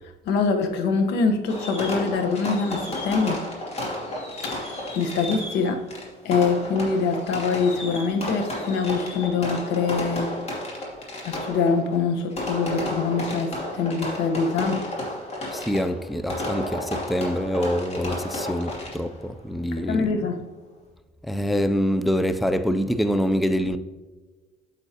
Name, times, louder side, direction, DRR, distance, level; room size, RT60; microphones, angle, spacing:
voice 1, 0.3-3.4 4.4-5.8 6.2-10.3 11.2-14.8 19.8-20.4, left 4 dB, 85° left, 1.1 m, -24 dB
Fireworks, 1.5-19.3, left 1 dB, 40° left, 2.6 m, -32 dB
voice 2, 15.5-20.1 21.2-23.8, equal, ahead, 0.4 m, -25 dB
8.4 x 7.8 x 2.9 m
cardioid pair, 110°, 17 cm